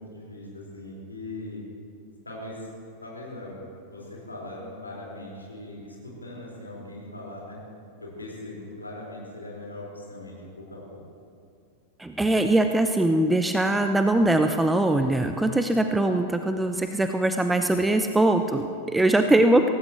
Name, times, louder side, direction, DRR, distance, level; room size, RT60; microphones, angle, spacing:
voice 1, 0.0-1.6 2.2-2.7 3.0-3.6 3.9-7.6 8.0-11.0, left 1 dB, 80° left, -4 dB, 4.7 m, -40 dB
voice 2, 12.0-19.7, right 1 dB, 5° right, 7 dB, 0.6 m, -22 dB
23.0 x 17.5 x 3.1 m, 2.4 s
figure-of-eight pair, 90°, 0 cm